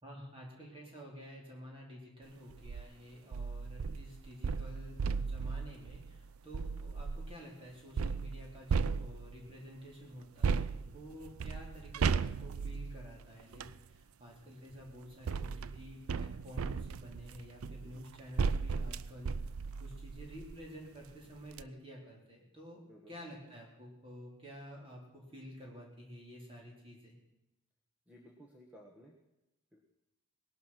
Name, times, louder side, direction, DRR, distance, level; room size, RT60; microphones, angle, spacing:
voice 1, 0.0-27.1, equal, 25° right, -2 dB, 4.2 m, -50 dB
sound 1, 2.5-2.8 3.3-7.4 8.0-9.5 10.4-13.8 14.7-20.7 21.1-21.2 21.5-21.6, right 5 dB, 75° right, 0.4 m, -36 dB
voice 2, 28.1-29.1 29.7-29.8, equal, 5° right, -1 dB, 1.5 m, -57 dB
19.5 x 11.5 x 6.1 m, 0.96 s
head